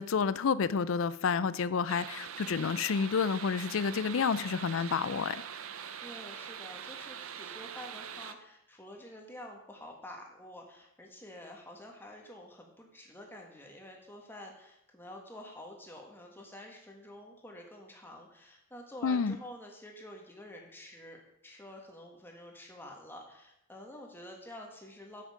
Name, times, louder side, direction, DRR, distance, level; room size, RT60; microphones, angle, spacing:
voice 1, 0.0-5.4 19.0-19.4, left 5 dB, 70° left, 0.4 m, -29 dB
sound 1, 1.9-8.3, right 8 dB, 75° right, 0.6 m, -43 dB
voice 2, 6.0-25.2, left 1 dB, 10° left, 1.6 m, -49 dB
8.8 x 7.8 x 5.0 m
head